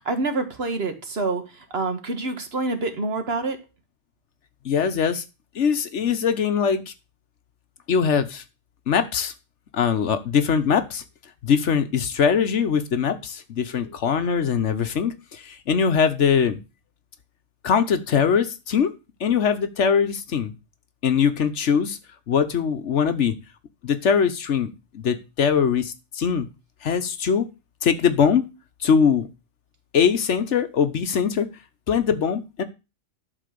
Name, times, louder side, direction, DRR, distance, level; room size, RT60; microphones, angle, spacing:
voice 1, 0.0-3.6, right 3 dB, 50° right, 7 dB, 1.5 m, -27 dB
voice 2, 4.6-5.2 5.5-6.9 7.9-8.4 8.9-9.3 9.7-11.0 11.4-16.6 17.6-18.9 19.2-20.5 21.0-22.0 22.3-23.3 23.8-26.5 26.8-27.5 27.8-28.5 28.8-29.3 29.9-31.5 31.9-32.6, left 7 dB, 65° left, 10 dB, 1.2 m, -22 dB
11.5 x 4.1 x 6.8 m, 0.28 s
omnidirectional pair, 1.4 m